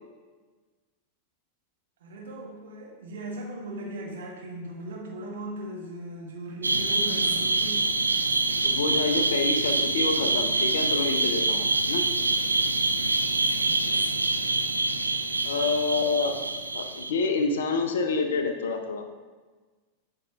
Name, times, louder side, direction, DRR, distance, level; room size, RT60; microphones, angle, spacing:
voice 1, 2.0-7.9 13.6-14.1, right 1 dB, 60° right, -2 dB, 1.4 m, -38 dB
sound 1, 6.6-17.1, right 3 dB, 80° right, 0.3 m, -25 dB
voice 2, 8.6-12.1 15.4-16.3 16.7-19.0, left 4 dB, 60° left, 6 dB, 0.6 m, -27 dB
8.4 x 5.2 x 2.4 m, 1.3 s
figure-of-eight pair, 90°, 0 cm